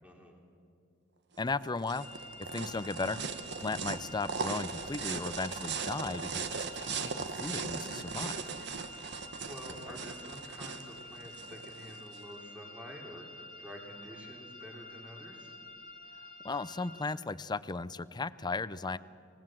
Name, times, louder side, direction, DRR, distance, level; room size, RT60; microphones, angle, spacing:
voice 1, 0.0-0.4 8.9-15.5, equal, 5° right, 0 dB, 3.3 m, -49 dB
voice 2, 1.4-3.2 3.6-7.1 7.4-8.4 16.4-19.0, left 3 dB, 20° left, 15 dB, 0.5 m, -36 dB
sound 1, 1.4-12.2, right 5 dB, 60° right, 1.2 m, -39 dB
sound 2, 2.0-17.1, left 1 dB, 45° left, 2.1 m, -49 dB
26.5 x 19.0 x 7.6 m, 2.4 s
head